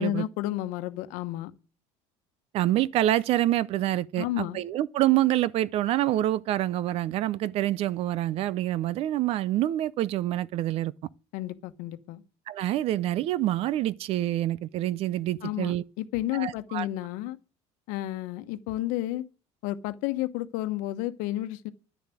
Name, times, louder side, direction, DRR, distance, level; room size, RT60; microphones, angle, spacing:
voice 1, 0.0-1.5 4.2-4.6 11.3-12.2 15.4-17.4 17.9-19.2 19.6-21.7, left 15 dB, 75° left, 1.1 m, -31 dB
voice 2, 2.5-10.9 12.5-15.8 16.3-16.9, right 14 dB, 50° right, 0.5 m, -26 dB
10.5 x 7.0 x 9.1 m
cardioid pair, 150°, 13 cm